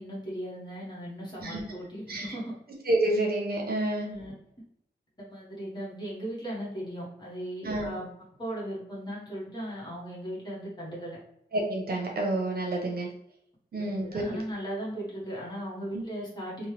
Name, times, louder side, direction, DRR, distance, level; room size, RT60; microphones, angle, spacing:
voice 1, 0.0-2.5 4.1-4.3 5.2-8.1 8.4-11.2 13.8-16.7, equal, 25° left, -5 dB, 1.1 m, -37 dB
voice 2, 2.9-4.2 7.6-7.9 11.5-13.1 13.7-14.2 15.9-16.0, right 2 dB, 60° right, -1 dB, 0.7 m, -29 dB
3.1 x 2.1 x 3.1 m, 0.75 s
wide cardioid pair, 145°, 18 cm